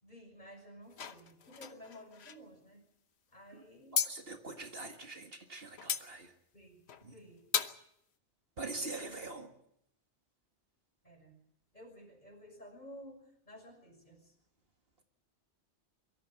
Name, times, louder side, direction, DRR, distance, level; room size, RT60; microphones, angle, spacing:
voice 1, 0.0-2.8 3.3-4.0 6.5-6.8 7.0-7.5 8.8-9.1 11.0-11.4 11.7-14.3, equal, 40° left, 0 dB, 5.7 m, -53 dB
sound 1, 0.9-2.4 4.0-4.1 5.8-6.0 6.9-7.1 7.5-7.8, left 7 dB, 65° left, 1.3 m, -35 dB
voice 2, 3.9-6.3 7.0-7.1 8.6-9.5, right 3 dB, 55° right, 5 dB, 2.0 m, -43 dB
23.0 x 13.5 x 9.9 m, 0.76 s
omnidirectional pair, 1.2 m